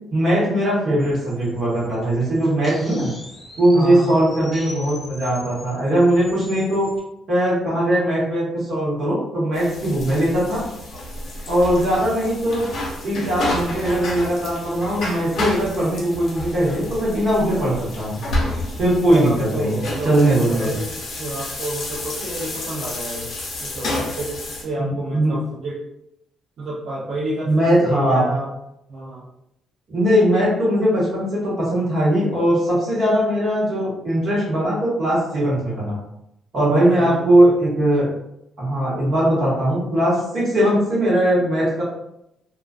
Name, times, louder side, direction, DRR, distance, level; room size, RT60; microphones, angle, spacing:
voice 1, 0.1-3.1 3.6-6.9 7.3-10.6 11.5-12.7 13.0-18.2 18.8-19.8 20.0-20.7 24.8-25.3 27.4-28.2 29.9-36.0 36.5-38.1 38.6-41.8, right 1 dB, 40° right, -7 dB, 1.2 m, -19 dB
sound 1, 1.0-7.0, left 1 dB, 20° left, 0.8 m, -41 dB
voice 2, 3.7-4.2 10.9-11.0 19.1-20.9 21.2-23.3 23.6-25.9 26.6-28.5 28.9-29.3 36.7-37.5, right 2 dB, 60° right, -7 dB, 0.5 m, -30 dB
Kitchen Cooking Noises & Ambience, 9.5-24.6, left 1 dB, 50° left, 0.7 m, -30 dB
2.4 x 2.3 x 2.4 m, 0.82 s
cardioid pair, 170°, 0 cm